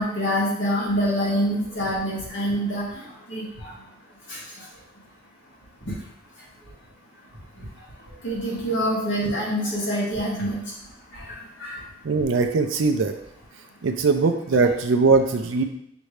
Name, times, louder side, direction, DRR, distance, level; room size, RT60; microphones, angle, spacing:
voice 1, 0.0-2.8 3.3-3.4 4.3-4.4 8.2-10.6 11.3-11.4 11.6-11.8, equal, 70° left, -6 dB, 1.7 m, -25 dB
voice 2, 12.0-13.1 13.8-15.6, right 4 dB, 80° right, 6 dB, 0.5 m, -20 dB
5.9 x 2.7 x 3.2 m, 0.72 s
head